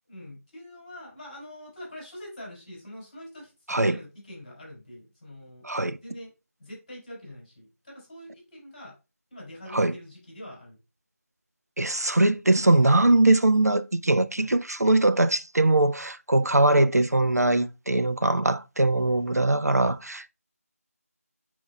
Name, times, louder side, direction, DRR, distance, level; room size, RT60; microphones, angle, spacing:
voice 1, 0.1-5.6 6.0-6.3 6.6-9.0 9.3-10.8 14.4-14.5 16.5-16.7, left 1 dB, 20° left, 4.0 m, -44 dB
voice 2, 5.6-6.0 9.7-9.9 11.8-20.3, right 2 dB, 80° right, 0.6 m, -21 dB
9.8 x 4.5 x 2.4 m
figure-of-eight pair, 170°, 8 cm